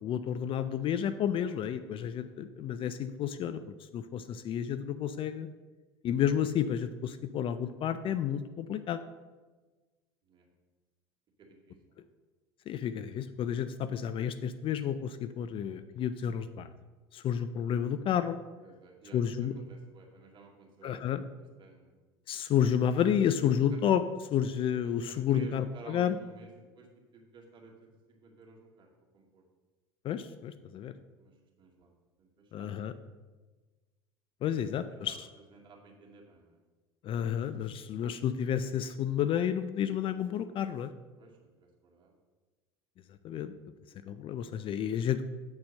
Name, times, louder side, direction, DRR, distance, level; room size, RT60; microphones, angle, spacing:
voice 1, 0.0-3.6 3.9-5.5 6.0-9.0 12.7-16.7 17.1-18.4 19.1-19.5 20.8-21.2 22.3-24.0 24.3-26.2 30.0-30.9 32.5-32.9 34.4-35.3 37.0-40.9 43.2-43.5 44.1-45.3, left 9 dB, 40° left, 12 dB, 0.4 m, -31 dB
voice 2, 1.9-2.3 10.2-10.5 11.4-12.1 18.6-21.0 21.6-21.9 23.7-23.8 24.8-26.5 26.7-26.9 27.1-29.4 31.1-31.9 32.2-32.7 34.4-34.6 34.9-36.6 41.2-42.1, right 3 dB, 35° right, -1 dB, 2.2 m, -54 dB
7.8 x 4.3 x 6.4 m, 1.3 s
hypercardioid pair, 85°, 14 cm